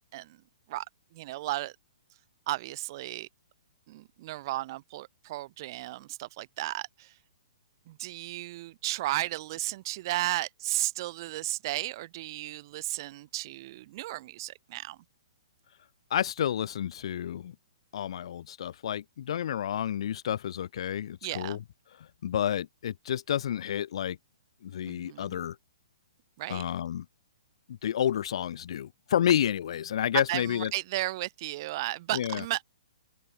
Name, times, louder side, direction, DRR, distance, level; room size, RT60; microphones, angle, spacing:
voice 1, 1.1-1.7 2.5-3.3 3.9-7.1 7.9-15.0 21.2-21.6 24.9-25.4 26.4-26.6 30.3-32.6, right 17 dB, 40° right, 2.0 m, -34 dB
voice 2, 16.1-17.5 17.9-21.6 22.2-24.2 24.6-25.5 26.5-27.0 27.7-30.7 32.1-32.4, left 10 dB, 60° left, 1.3 m, -30 dB
hypercardioid pair, 150°, 3 cm